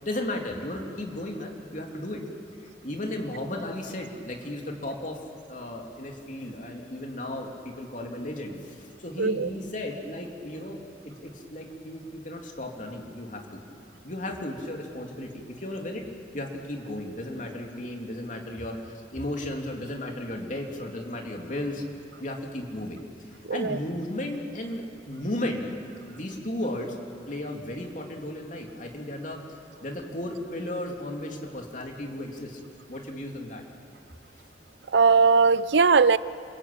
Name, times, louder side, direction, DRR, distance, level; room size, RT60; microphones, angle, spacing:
voice 1, 0.0-2.2 2.6-5.2 5.5-10.8 11.0-13.6 14.0-16.0 16.3-21.8 22.2-23.0 23.5-25.7 26.1-26.9 27.3-29.4 29.8-32.6 32.9-33.6, left 1 dB, 45° left, 1 dB, 3.2 m, -35 dB
voice 2, 9.2-9.5 23.5-23.8 34.9-36.2, right 4 dB, 85° right, 16 dB, 0.6 m, -19 dB
28.5 x 22.0 x 8.8 m, 2.4 s
head